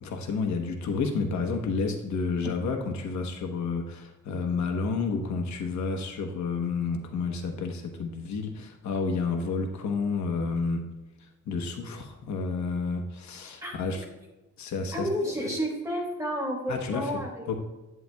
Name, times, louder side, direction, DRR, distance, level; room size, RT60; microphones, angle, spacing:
voice 1, 0.0-10.8 11.5-14.1 14.6-15.1 15.4-15.5 16.7-17.2 17.5-17.6, left 4 dB, 70° left, 3 dB, 1.1 m, -30 dB
voice 2, 14.9-17.6, equal, 10° right, -1 dB, 2.3 m, -31 dB
11.0 x 8.9 x 2.3 m, 1.1 s
cardioid pair, 155°, 29 cm